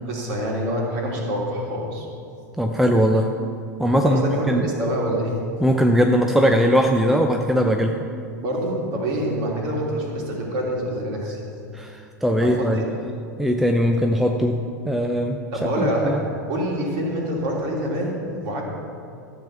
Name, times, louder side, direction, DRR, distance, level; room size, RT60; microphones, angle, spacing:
voice 1, 0.1-2.1 4.0-5.4 8.4-11.4 12.4-12.8 15.5-16.2 16.5-18.6, equal, 45° right, -2 dB, 3.1 m, -26 dB
voice 2, 2.6-3.3 3.8-4.7 5.6-8.0 11.7-12.8 13.4-14.6 14.9-15.4 15.8-16.2, equal, ahead, 3 dB, 0.6 m, -20 dB
13.5 x 7.5 x 5.9 m, 2.5 s
figure-of-eight pair, 90°, 10 cm